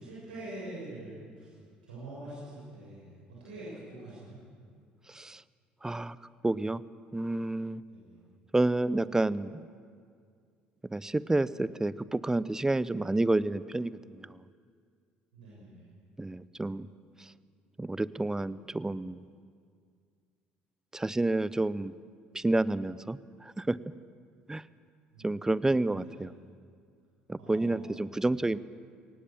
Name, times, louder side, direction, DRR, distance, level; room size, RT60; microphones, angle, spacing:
voice 1, 0.0-1.5 1.8-3.1 3.4-4.4 7.9-8.2 15.3-15.8 25.1-25.6 26.0-26.2 27.4-28.1, right 1 dB, 85° right, -8 dB, 6.8 m, -45 dB
voice 2, 5.1-5.4 5.8-6.2 6.4-6.8 7.1-7.8 8.5-9.6 10.9-14.4 16.2-16.9 17.2-17.3 17.8-19.2 20.9-21.9 22.3-23.8 24.5-24.6 25.2-26.3 27.3-28.6, right 2 dB, 10° right, 18 dB, 0.7 m, -29 dB
23.0 x 18.5 x 7.5 m, 2.1 s
hypercardioid pair, 60°, 5 cm